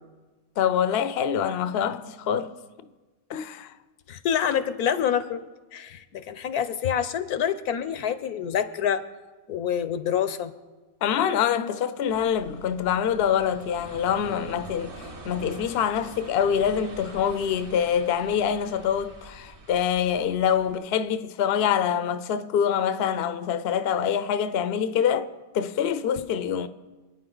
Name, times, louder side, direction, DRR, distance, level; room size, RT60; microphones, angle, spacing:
voice 1, 0.6-2.5 3.3-3.7 11.0-26.7, left 8 dB, 55° left, 0.7 m, -25 dB
voice 2, 4.1-5.4 5.7-9.0 9.5-10.5, left 8 dB, 85° left, 1.3 m, -27 dB
sound 1, 12.1-20.7, right 2 dB, 40° right, 1.4 m, -44 dB
27.0 x 9.4 x 3.9 m
omnidirectional pair, 1.6 m